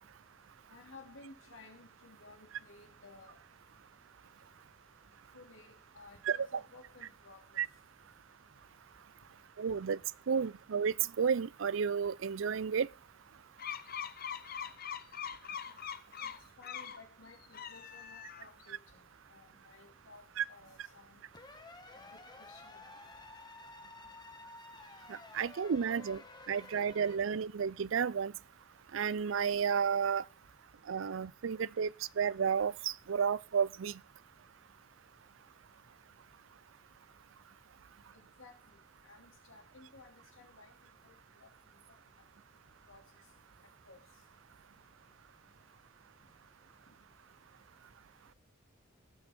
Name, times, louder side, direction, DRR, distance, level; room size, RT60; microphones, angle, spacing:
voice 1, 0.7-3.4 5.3-7.6 16.2-19.0 19.3-21.2 22.0-22.8 38.1-40.7 41.0-41.5 42.8-43.0 43.9-44.0, left 3 dB, 80° left, 3.1 m, -56 dB
voice 2, 6.2-6.6 7.6-7.7 9.6-10.0 10.3-12.9 20.4-20.5 25.1-26.2 26.5-28.3 28.9-30.2 30.9-31.9 32.2-34.0, right 6 dB, 70° right, 0.5 m, -32 dB
sound 1, 13.6-17.0 17.4-18.7, left 8 dB, 50° left, 0.8 m, -42 dB
sound 2, 21.3-27.2, left 3 dB, 20° left, 1.3 m, -52 dB
18.0 x 6.1 x 4.4 m
head